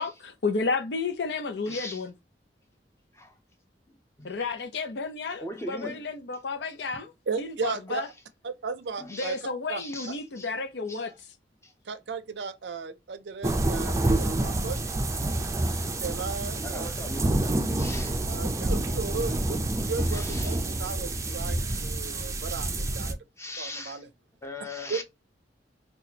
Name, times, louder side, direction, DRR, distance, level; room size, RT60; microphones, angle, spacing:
voice 1, 0.0-2.1 4.2-7.1 7.4-8.1 9.1-11.1, left 4 dB, 75° left, 0.6 m, -32 dB
voice 2, 1.7-2.0 3.1-3.3 4.2-4.5 5.4-6.1 9.0-9.4 9.8-10.5 10.9-11.0 11.6-11.7 16.6-18.2 20.1-20.6 23.4-24.0 24.4-25.0, left 1 dB, 15° left, 0.7 m, -40 dB
voice 3, 7.3-8.0 8.4-9.4 9.7-9.8 11.9-14.9 15.9-16.8 18.3-23.2 23.6-24.1 24.9-25.0, right 5 dB, 80° right, 0.5 m, -35 dB
sound 1, 13.4-23.1, right 2 dB, 20° right, 0.4 m, -28 dB
4.2 x 2.3 x 2.8 m
head